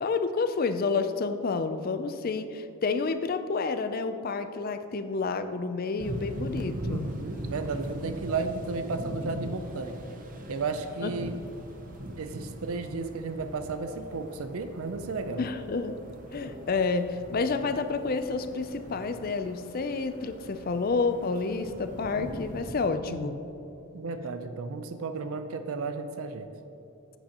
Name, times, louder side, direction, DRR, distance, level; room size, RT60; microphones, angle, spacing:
voice 1, 0.0-7.1 11.0-11.3 15.4-16.0 16.3-23.4, left 4 dB, 40° left, 10 dB, 0.4 m, -29 dB
sound 1, 6.0-22.9, right 1 dB, 35° right, 0.7 m, -40 dB
voice 2, 6.7-10.0 10.5-11.4 12.2-15.4 23.1-23.4 23.9-26.5, right 4 dB, 70° right, 9 dB, 0.5 m, -33 dB
11.0 x 9.1 x 2.9 m, 3.0 s
head